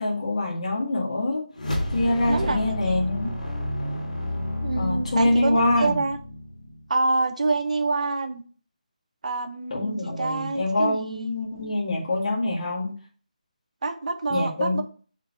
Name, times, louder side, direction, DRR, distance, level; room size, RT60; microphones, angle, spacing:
voice 1, 0.0-1.4 1.9-3.3 4.8-6.0 9.7-13.0 14.3-14.8, left 1 dB, 45° left, -3 dB, 2.0 m, -25 dB
sound 1, 1.5-6.9, left 1 dB, 60° left, 3.6 m, -30 dB
voice 2, 2.3-3.0 4.6-6.2 6.9-8.4 9.2-11.3 13.8-14.8, right 3 dB, 55° right, 7 dB, 1.1 m, -27 dB
6.2 x 3.8 x 5.8 m, 0.40 s
figure-of-eight pair, 170°, 4 cm